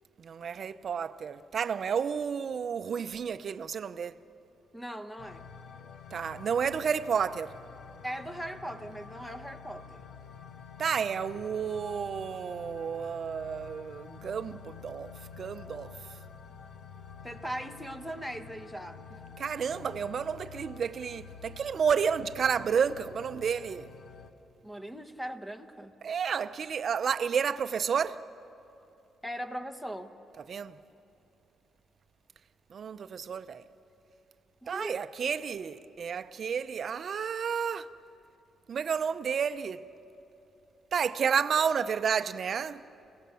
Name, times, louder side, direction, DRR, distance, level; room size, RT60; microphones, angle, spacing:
voice 1, 0.2-4.1 6.1-7.5 10.8-15.1 15.4-15.9 19.4-23.9 26.0-28.2 30.5-30.7 32.7-33.6 34.7-37.9 38.7-39.8 40.9-42.8, right 7 dB, 50° right, 0.6 m, -31 dB
voice 2, 4.7-5.4 8.0-10.0 17.2-19.2 24.6-25.9 29.2-30.1 34.6-35.0, equal, 5° left, 1.1 m, -39 dB
sound 1, 5.2-24.3, left 6 dB, 80° left, 1.0 m, -48 dB
30.0 x 17.0 x 7.0 m
cardioid pair, 105°, 0 cm